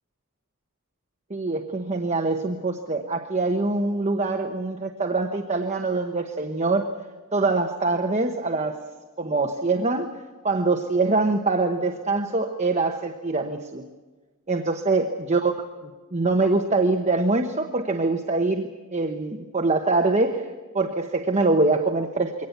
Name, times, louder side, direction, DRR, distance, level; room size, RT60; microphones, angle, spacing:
voice 1, 1.3-6.9 7.3-8.8 9.2-10.1 10.4-13.8 14.5-15.5 15.8-20.5 20.7-22.5, right 3 dB, 30° right, 4 dB, 1.0 m, -24 dB
23.0 x 18.0 x 8.1 m, 1.3 s
head